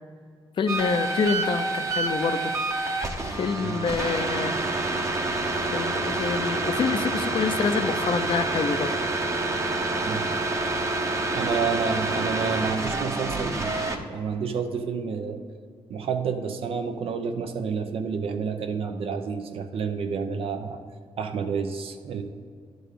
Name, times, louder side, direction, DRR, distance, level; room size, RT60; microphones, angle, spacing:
voice 1, 0.6-2.5 3.2-4.6 5.2-5.3 5.7-8.9, left 5 dB, 55° left, 9 dB, 0.6 m, -27 dB
sound 1, 0.7-14.0, right 2 dB, 30° right, 1.0 m, -27 dB
voice 2, 3.2-3.8 10.0-10.3 11.3-15.4 15.9-20.8 21.2-22.2, right 5 dB, 70° right, 6 dB, 0.9 m, -29 dB
11.0 x 4.0 x 6.8 m, 2.1 s
cardioid pair, 95°, 10 cm